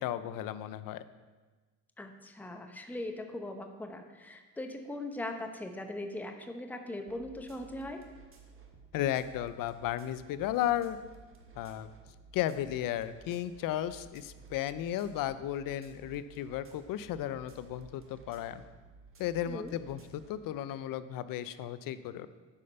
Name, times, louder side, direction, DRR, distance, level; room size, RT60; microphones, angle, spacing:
voice 1, 0.0-1.0 8.9-11.0 11.6-11.9 12.3-18.6 19.2-22.3, left 12 dB, 65° left, 14 dB, 0.6 m, -34 dB
voice 2, 2.0-8.0 19.5-19.7, left 1 dB, 5° left, 5 dB, 0.8 m, -40 dB
sound 1, 7.1-20.4, right 5 dB, 35° right, 1.4 m, -55 dB
8.3 x 5.2 x 5.5 m, 1.3 s
cardioid pair, 90°, 36 cm